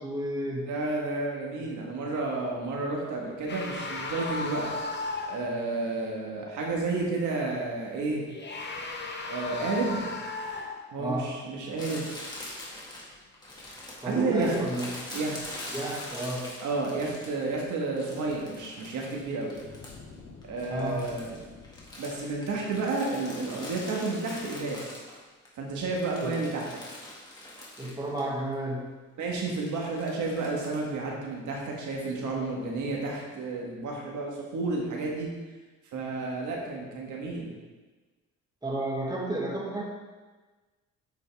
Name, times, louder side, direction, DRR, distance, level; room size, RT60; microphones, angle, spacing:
voice 1, 0.0-0.7 1.6-1.7 11.0-11.3 14.0-15.1 15.7-16.5 20.7-21.0 26.2-26.4 27.8-28.9 38.6-39.8, right 1 dB, 15° right, -2 dB, 1.6 m, -32 dB
voice 2, 0.6-4.7 5.3-8.2 9.3-10.1 10.9-12.1 14.0-14.6 15.1-15.7 16.6-19.5 20.5-21.4 22.0-25.0 25.5-26.6 29.2-35.3 35.9-37.5, right 3 dB, 75° right, -1 dB, 1.6 m, -31 dB
sound 1, 3.5-5.6 8.2-10.9, left 3 dB, 35° left, 0.9 m, -35 dB
Crumpling crinkling, 11.8-17.5 18.0-20.1 20.4-25.5 25.8-28.3 28.5-28.6 29.5-30.9, left 1 dB, 15° left, 2.0 m, -43 dB
sound 2, 12.3-14.4 15.2-15.3 16.0-16.4 18.1-22.5, left 4 dB, 75° left, 1.3 m, -52 dB
8.4 x 5.3 x 3.5 m, 1.3 s
cardioid pair, 90°, 30 cm